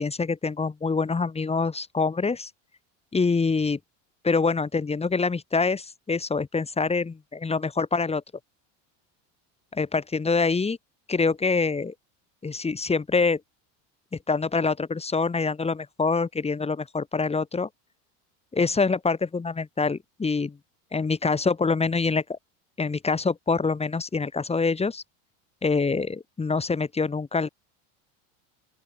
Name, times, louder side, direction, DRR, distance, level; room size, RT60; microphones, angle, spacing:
voice 1, 0.0-2.5 3.1-3.8 4.2-8.2 9.7-10.8 11.1-11.9 12.4-13.4 14.3-17.7 18.5-20.6 20.9-22.4 22.8-25.0 25.6-27.5, left 4 dB, 15° left, 3.9 m, -25 dB
open air
supercardioid pair, 125°, 40 cm